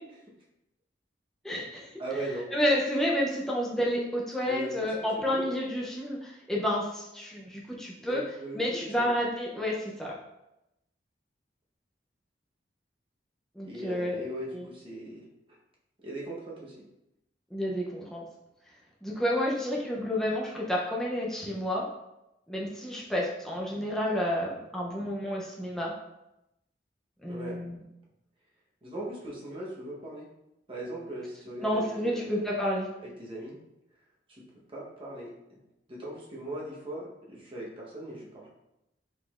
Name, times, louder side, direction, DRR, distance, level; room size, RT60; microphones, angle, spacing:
voice 1, 1.4-1.9 2.5-8.2 8.5-10.2 13.6-14.2 14.5-14.6 17.5-18.2 19.0-21.9 22.5-25.9 27.2-27.8 31.6-32.9, equal, 5° left, -4 dB, 0.6 m, -30 dB
voice 2, 2.0-2.5 4.5-5.5 8.0-9.1 13.6-15.6 16.0-16.9 27.3-27.6 28.8-30.3 30.7-32.4 33.0-33.6 34.3-35.6 35.9-38.5, right 1 dB, 30° right, -4 dB, 1.0 m, -39 dB
4.9 x 3.8 x 2.5 m, 0.88 s
head